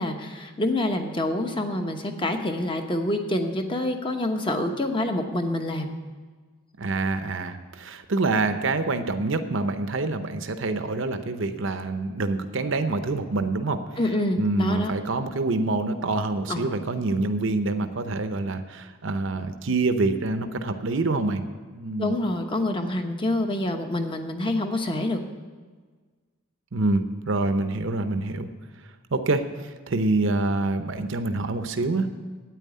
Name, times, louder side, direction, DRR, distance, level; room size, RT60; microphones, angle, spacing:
voice 1, 0.0-5.9 14.0-14.9 16.5-16.7 22.0-25.2, left 1 dB, 25° left, 5 dB, 1.0 m, -26 dB
voice 2, 6.8-13.8 14.4-21.4 21.7-22.1 26.7-28.5 29.1-32.1, right 3 dB, 60° right, 8 dB, 0.7 m, -26 dB
9.1 x 9.0 x 9.4 m, 1.5 s
head